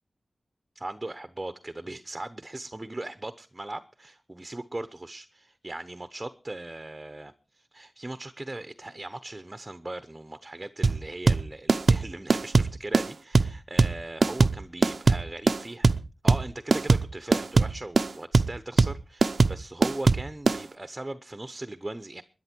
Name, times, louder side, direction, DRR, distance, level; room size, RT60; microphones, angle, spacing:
voice 1, 0.7-15.9 16.2-22.2, right 2 dB, 25° right, 0.9 m, -39 dB
sound 1, 10.8-20.6, right 3 dB, 70° right, 0.6 m, -21 dB
21.0 x 10.5 x 4.6 m
wide cardioid pair, 90°, 0 cm